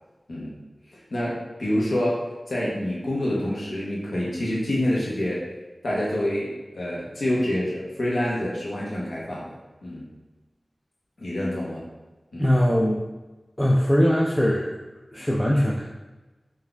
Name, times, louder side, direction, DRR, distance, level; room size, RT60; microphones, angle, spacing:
voice 1, 1.1-2.2 2.5-5.4 5.8-9.5 9.8-10.1 11.2-11.8 12.3-12.5, left 1 dB, 80° left, -6 dB, 0.9 m, -27 dB
voice 2, 12.4-13.0 13.6-14.7 15.1-15.9, equal, 10° left, -4 dB, 0.4 m, -21 dB
4.0 x 2.6 x 3.4 m, 1.1 s
wide cardioid pair, 65°, 0 cm